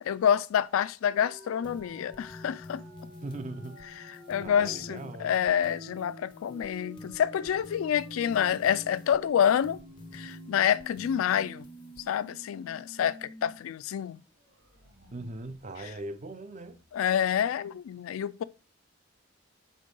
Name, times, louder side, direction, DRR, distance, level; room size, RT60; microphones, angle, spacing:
voice 1, 0.0-2.8 4.0-9.8 10.1-11.7 12.1-14.2 16.9-18.4, left 9 dB, 85° left, 0.3 m, -28 dB
sound 1, 1.1-13.5 13.9-14.0 14.3-17.0, right 1 dB, 80° right, 2.7 m, -50 dB
sound 2, 1.6-12.3, left 2 dB, 25° left, 0.5 m, -49 dB
voice 2, 3.2-3.8 4.4-5.3 15.1-16.8, right 2 dB, 35° right, 0.5 m, -40 dB
5.2 x 3.7 x 5.3 m
head